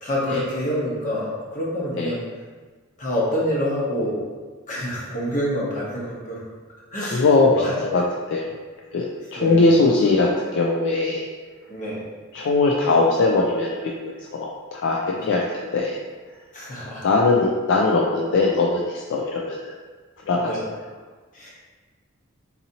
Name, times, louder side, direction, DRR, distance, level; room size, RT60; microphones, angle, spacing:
voice 1, 0.0-2.2 3.0-4.2 4.7-6.4 6.9-7.7 9.4-9.6 11.7-12.0 15.1-15.3 16.5-17.1 20.4-20.6 21.3-21.5, equal, 40° left, -6 dB, 1.0 m, -27 dB
voice 2, 7.1-7.5 7.8-8.0 8.3-8.5 8.9-11.3 12.3-16.0 17.0-19.7 20.3-20.5, left 3 dB, 60° left, -2 dB, 0.4 m, -20 dB
4.0 x 2.7 x 2.7 m, 1.4 s
head